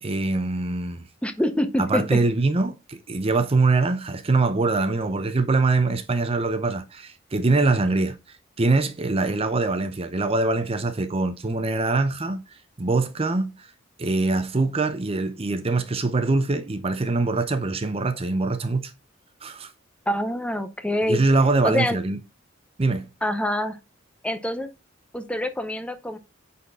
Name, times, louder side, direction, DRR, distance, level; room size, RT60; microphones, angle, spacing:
voice 1, 0.0-1.1 1.8-13.7 14.0-18.9 19.4-19.7 21.1-22.2 22.8-23.1, right 3 dB, 30° right, 0.6 m, -23 dB
voice 2, 1.2-2.2 20.1-21.2 21.6-22.0 23.2-23.8 24.2-24.7 25.1-26.2, left 1 dB, 5° left, 0.7 m, -25 dB
9.0 x 4.3 x 3.5 m
head